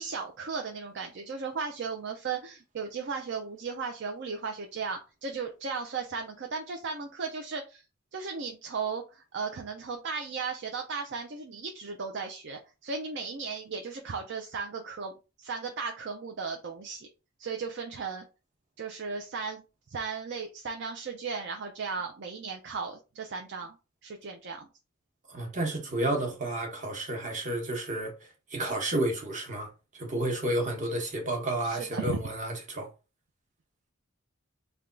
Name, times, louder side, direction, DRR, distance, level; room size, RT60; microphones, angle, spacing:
voice 1, 0.0-7.8 8.1-15.1 15.4-17.1 17.4-18.2 18.8-19.6 19.9-23.8 24.0-24.7 31.6-32.2, right 5 dB, 60° right, 0.5 m, -36 dB
voice 2, 25.3-32.9, right 1 dB, 40° right, 1.0 m, -31 dB
3.4 x 2.3 x 3.7 m
head